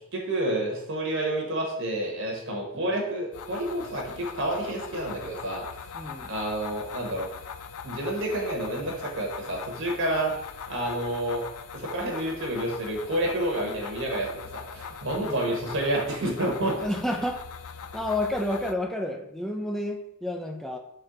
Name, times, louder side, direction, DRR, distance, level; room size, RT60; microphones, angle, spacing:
voice 1, 0.1-5.6 6.3-7.3 7.8-10.3 10.7-11.4 11.7-16.8, right 1 dB, 55° right, 0 dB, 1.1 m, -29 dB
sound 1, 3.3-18.7, left 6 dB, 75° left, 0.4 m, -41 dB
voice 2, 5.9-6.3 15.2-15.6 16.8-17.4 17.9-20.8, left 1 dB, ahead, 4 dB, 0.4 m, -30 dB
4.4 x 3.2 x 3.7 m, 0.80 s
head